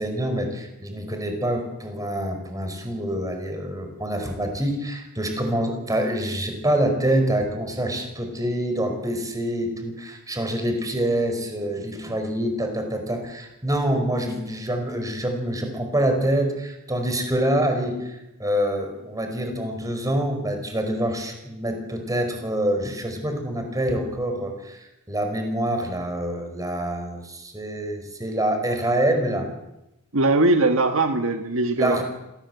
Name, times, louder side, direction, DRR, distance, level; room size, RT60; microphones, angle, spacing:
voice 1, 0.0-29.5 31.8-32.0, right 1 dB, 15° right, 5 dB, 5.0 m, -26 dB
voice 2, 30.1-32.0, right 2 dB, 65° right, 6 dB, 1.6 m, -20 dB
26.5 x 18.0 x 8.0 m, 0.91 s
head